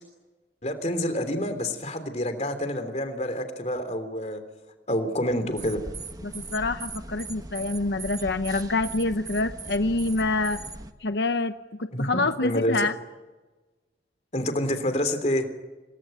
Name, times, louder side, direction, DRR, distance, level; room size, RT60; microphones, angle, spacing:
voice 1, 0.6-4.4 4.9-5.8 11.9-12.8 14.3-15.4, equal, 40° left, 8 dB, 3.2 m, -27 dB
sound 1, 5.5-10.9, right 3 dB, 20° right, 1.3 m, -39 dB
voice 2, 6.2-10.6 11.0-12.9, left 2 dB, 80° left, 9 dB, 0.9 m, -26 dB
27.5 x 19.5 x 9.2 m, 1.2 s
head